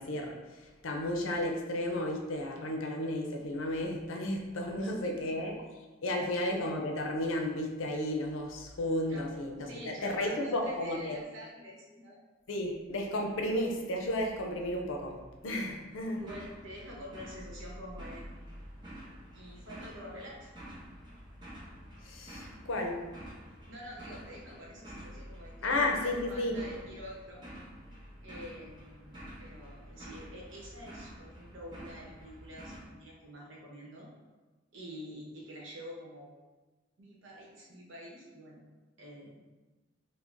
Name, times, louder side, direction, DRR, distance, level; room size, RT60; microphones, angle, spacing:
voice 1, 0.0-5.5 6.0-11.2 12.5-16.2 22.0-23.1 25.6-26.6, left 1 dB, 75° left, 1 dB, 0.5 m, -33 dB
voice 2, 4.8-5.1 6.2-6.3 9.1-9.2 9.6-12.2 16.1-18.2 19.3-20.5 23.4-27.4 28.2-34.1 34.7-36.3 37.0-38.6 39.0-39.4, equal, 70° right, -4 dB, 0.9 m, -47 dB
sound 1, 16.1-32.9, equal, 20° right, 0.8 m, -48 dB
4.9 x 2.1 x 2.5 m, 1.2 s
head